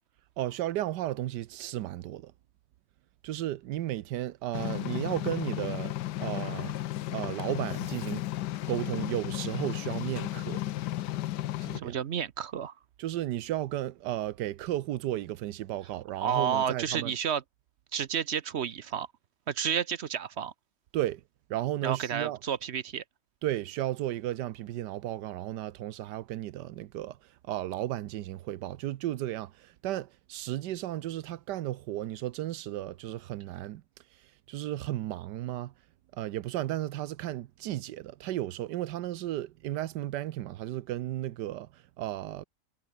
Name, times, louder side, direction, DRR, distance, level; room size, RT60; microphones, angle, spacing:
voice 1, 0.4-2.3 3.2-5.9 6.2-6.7 7.1-8.2 8.7-10.6 11.6-12.0 13.0-17.1 20.9-21.2 21.5-22.4 23.4-27.2 27.5-33.8 34.5-35.7 36.1-42.4, right 14 dB, 85° right, 1.3 m, -34 dB
sound 1, 4.5-11.8, left 14 dB, 90° left, 1.3 m, -34 dB
voice 2, 11.7-12.7 16.2-17.4 17.9-19.1 19.5-20.5 21.8-23.0, right 8 dB, 55° right, 0.8 m, -31 dB
omnidirectional pair, 1.8 m